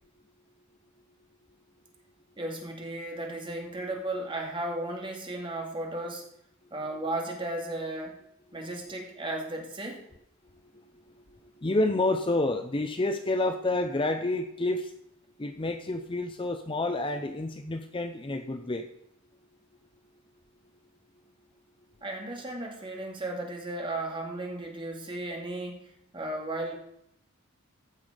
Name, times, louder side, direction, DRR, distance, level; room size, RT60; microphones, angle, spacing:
voice 1, 2.4-6.2 6.7-8.2 8.5-10.1 22.0-26.7, right 1 dB, 25° right, 1 dB, 2.3 m, -35 dB
voice 2, 11.6-14.9 15.4-18.9, left 2 dB, 25° left, 7 dB, 0.6 m, -29 dB
15.0 x 5.8 x 5.1 m, 0.73 s
head